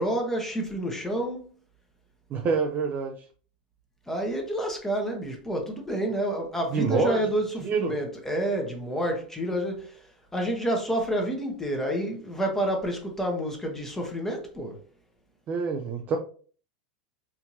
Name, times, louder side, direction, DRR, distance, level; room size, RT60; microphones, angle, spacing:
voice 1, 0.0-1.5 4.1-10.1 10.3-14.8, right 1 dB, 10° left, 1.0 m, -29 dB
voice 2, 2.3-3.1 6.7-7.2 7.6-7.9 15.5-16.2, right 5 dB, 40° right, 0.6 m, -26 dB
4.4 x 2.7 x 2.8 m
hypercardioid pair, 100°, 4 cm